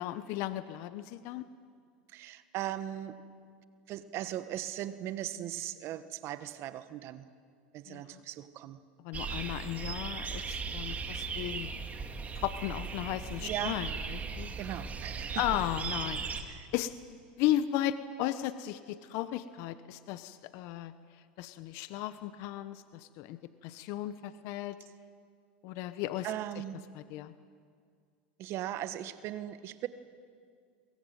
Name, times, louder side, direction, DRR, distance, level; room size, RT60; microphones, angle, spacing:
voice 1, 0.0-1.5 7.9-8.2 9.0-11.7 12.3-14.5 15.4-20.9 21.4-24.8 25.6-26.3 26.9-27.3, left 13 dB, 60° left, 12 dB, 1.0 m, -35 dB
voice 2, 2.1-3.2 3.9-7.3 7.7-8.8 13.4-13.8 14.5-15.4 16.5-16.7 26.2-26.9 28.4-29.9, right 12 dB, 50° right, 11 dB, 1.3 m, -38 dB
sound 1, 9.1-16.4, right 5 dB, 25° right, 2.4 m, -37 dB
22.0 x 20.0 x 9.3 m, 2.1 s
supercardioid pair, 110°, 6 cm